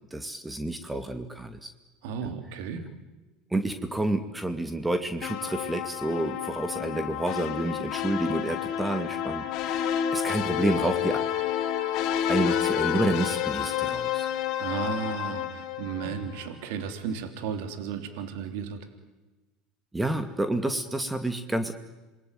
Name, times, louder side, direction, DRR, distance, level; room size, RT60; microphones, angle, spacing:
voice 1, 0.0-1.7 2.2-2.3 3.5-11.2 12.3-14.3 19.9-21.7, right 2 dB, 10° right, 9 dB, 2.3 m, -29 dB
voice 2, 2.0-2.8 14.6-18.9, right 7 dB, 70° right, 8 dB, 3.5 m, -34 dB
sound 1, 5.2-16.5, left 10 dB, 60° left, 3.3 m, -29 dB
27.5 x 21.5 x 9.4 m, 1.1 s
hypercardioid pair, 85°, 0 cm